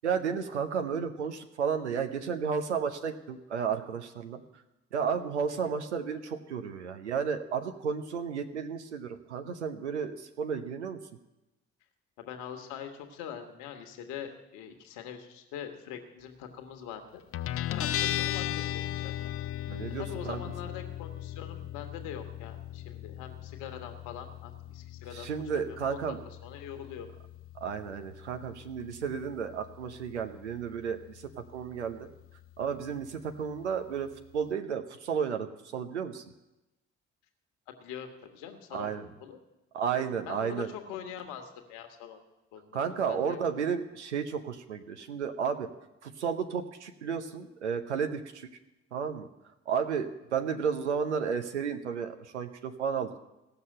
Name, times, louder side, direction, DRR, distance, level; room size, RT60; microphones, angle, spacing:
voice 1, 0.0-4.4 4.9-11.0 19.7-20.4 25.1-26.2 27.6-31.2 31.5-32.1 32.6-35.5 35.7-36.2 38.7-39.1 39.7-40.7 42.7-45.7 46.0-48.5 48.9-49.3 49.7-53.2, right 6 dB, 85° right, 8 dB, 0.8 m, -32 dB
voice 2, 12.2-17.2 17.7-19.1 20.0-26.1 26.4-27.1 37.7-38.9 39.2-39.4 40.0-42.2 42.5-42.8 43.1-43.7, left 8 dB, 65° left, 6 dB, 1.5 m, -43 dB
Guitar, 17.3-34.5, left 12 dB, 40° left, 0.5 m, -38 dB
16.5 x 6.8 x 7.8 m, 0.99 s
figure-of-eight pair, 40°, 34 cm